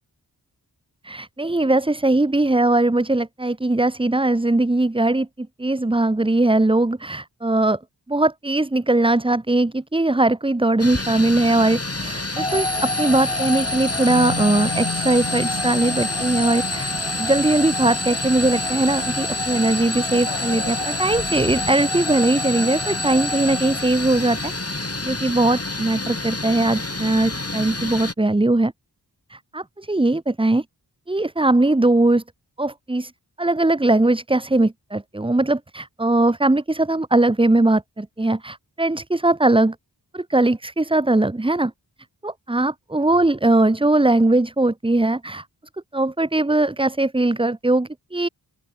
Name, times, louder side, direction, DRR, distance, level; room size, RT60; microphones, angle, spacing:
voice 1, 1.0-7.8 8.1-24.5 25.0-28.7 29.3-30.6 31.1-32.2 32.6-33.1 33.4-39.7 40.1-41.7 42.2-45.4 45.9-48.3, right 2 dB, 15° right, 0.8 m, -20 dB
sound 1, 10.8-28.1, left 2 dB, 35° left, 6.5 m, -29 dB
sound 2, 12.4-24.5, left 1 dB, 15° left, 2.9 m, -28 dB
sound 3, 14.1-18.7 19.1-19.2 19.5-21.7, left 4 dB, 65° left, 4.5 m, -35 dB
open air
wide cardioid pair, 55°, 42 cm